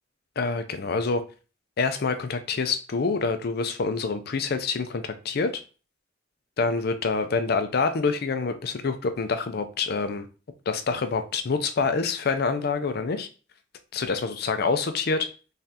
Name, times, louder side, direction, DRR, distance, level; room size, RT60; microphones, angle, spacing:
voice 1, 0.4-1.2 1.8-5.5 6.6-10.3 10.7-13.3 13.9-15.3, left 4 dB, 55° left, 0.5 m, -26 dB
3.7 x 3.2 x 2.8 m
head